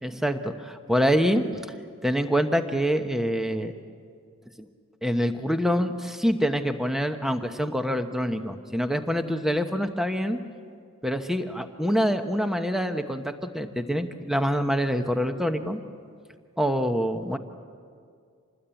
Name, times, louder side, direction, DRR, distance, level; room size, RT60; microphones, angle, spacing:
voice 1, 0.0-1.6 2.0-3.7 4.6-4.7 5.0-10.4 11.0-15.8 16.6-17.4, equal, ahead, 7 dB, 1.0 m, -26 dB
26.5 x 20.0 x 9.0 m, 2.2 s
head